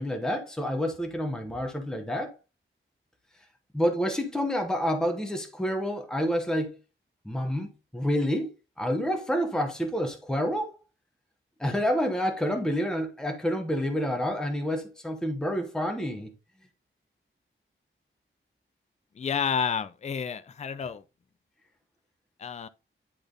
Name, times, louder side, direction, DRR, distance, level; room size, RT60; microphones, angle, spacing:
voice 1, 0.0-2.3 3.7-6.8 7.2-8.5 8.8-10.7 11.6-16.3, equal, 5° left, 1.0 m, -28 dB
voice 2, 19.2-21.0 22.4-22.7, left 6 dB, 35° left, 0.4 m, -30 dB
10.0 x 3.4 x 3.8 m
wide cardioid pair, 180°, 21 cm